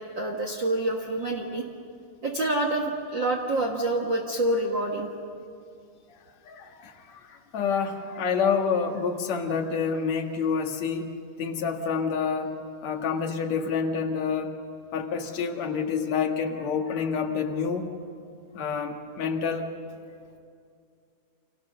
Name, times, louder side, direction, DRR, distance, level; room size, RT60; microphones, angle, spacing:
voice 1, 0.0-1.6 2.2-5.1, right 1 dB, 55° right, 2 dB, 1.3 m, -27 dB
voice 2, 6.5-11.1 11.4-12.5 12.8-14.5 14.9-17.9 18.5-19.7, left 6 dB, 55° left, 3 dB, 2.5 m, -28 dB
29.5 x 26.0 x 6.7 m, 2.4 s
omnidirectional pair, 4.5 m